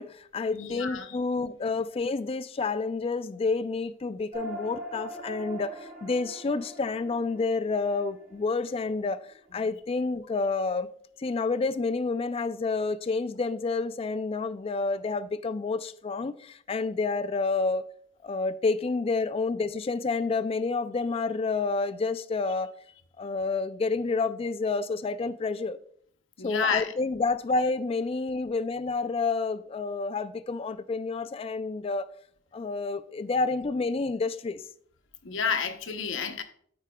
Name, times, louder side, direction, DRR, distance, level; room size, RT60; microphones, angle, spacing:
voice 1, 0.0-10.9 11.2-17.8 18.2-22.7 23.2-25.8 26.4-32.1 32.5-34.6, left 3 dB, 30° left, 0.3 m, -29 dB
voice 2, 0.5-1.2 26.4-26.9 35.2-36.4, left 6 dB, 75° left, 0.8 m, -30 dB
sound 1, 4.3-9.1, right 1 dB, 50° right, 2.8 m, -42 dB
14.0 x 4.7 x 2.3 m
head